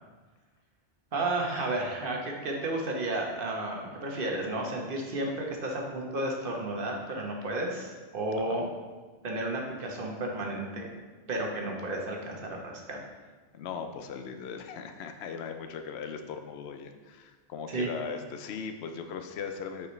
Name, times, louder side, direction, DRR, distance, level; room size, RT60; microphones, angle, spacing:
voice 1, 1.1-8.7 9.2-10.9 11.3-13.0 17.7-17.9, right 2 dB, 55° right, 0 dB, 1.2 m, -32 dB
voice 2, 13.5-19.9, left 6 dB, 75° left, 6 dB, 0.8 m, -38 dB
8.0 x 4.7 x 3.1 m, 1.3 s
omnidirectional pair, 1.1 m